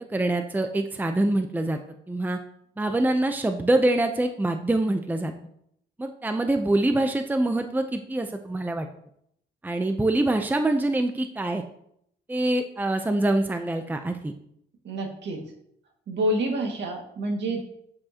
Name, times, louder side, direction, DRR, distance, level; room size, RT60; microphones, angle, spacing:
voice 1, 0.1-1.8 2.1-2.4 2.8-5.3 6.0-8.9 9.6-11.6 12.3-14.3, right 2 dB, 10° right, 6 dB, 0.7 m, -25 dB
voice 2, 14.8-15.4 16.1-17.6, right 1 dB, 65° right, 2 dB, 2.1 m, -28 dB
8.6 x 7.5 x 2.9 m, 0.72 s
cardioid pair, 90°, 20 cm